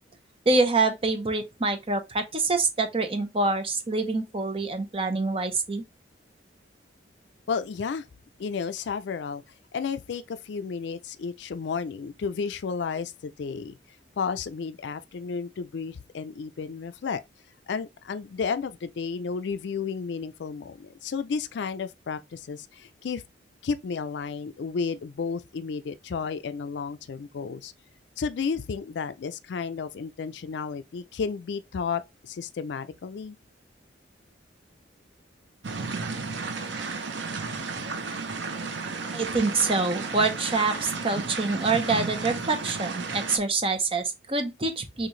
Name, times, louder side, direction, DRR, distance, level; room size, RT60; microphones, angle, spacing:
voice 1, 0.5-5.8 39.1-45.1, right 3 dB, 30° right, 0.8 m, -26 dB
voice 2, 7.5-8.1 8.4-9.4 9.7-13.8 14.2-17.2 17.7-23.2 23.6-27.7 28.2-33.4, left 5 dB, 65° left, 0.4 m, -32 dB
sound 1, 35.6-43.4, right 4 dB, 70° right, 0.8 m, -33 dB
6.3 x 2.5 x 3.1 m
head